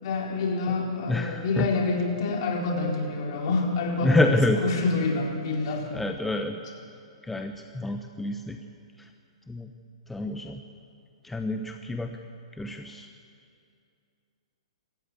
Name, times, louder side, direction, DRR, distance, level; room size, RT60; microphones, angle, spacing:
voice 1, 0.0-4.4 4.6-5.9, left 3 dB, 50° left, 0 dB, 4.3 m, -27 dB
voice 2, 1.1-1.7 4.0-4.6 5.9-6.6 7.2-8.6 9.0-9.1 9.5-9.7 10.1-10.6 11.2-12.2 12.5-13.1, left 1 dB, 5° left, 5 dB, 0.9 m, -27 dB
25.5 x 14.0 x 8.3 m, 2.5 s
figure-of-eight pair, 120°, 3 cm